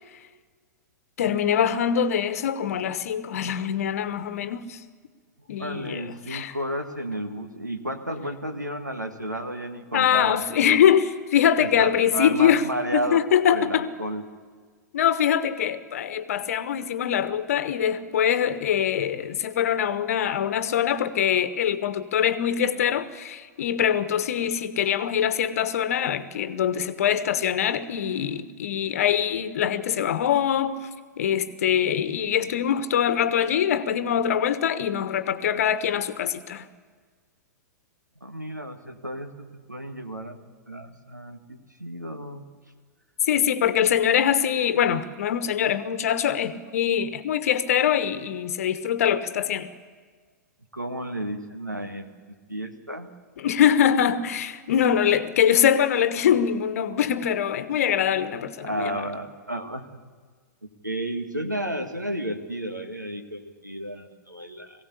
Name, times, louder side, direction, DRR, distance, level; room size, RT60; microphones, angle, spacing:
voice 1, 1.2-4.8 5.5-6.5 9.9-12.7 12.9-13.9 14.9-30.9 31.2-36.7 43.3-49.7 53.4-59.1, left 9 dB, 55° left, 1.2 m, -23 dB
voice 2, 5.6-10.4 10.7-10.8 11.6-14.2 38.2-40.4 40.7-42.5 50.7-53.1 58.6-59.8 60.8-64.8, right 1 dB, 90° right, 1.8 m, -32 dB
21.5 x 16.0 x 8.4 m
figure-of-eight pair, 105°, 9 cm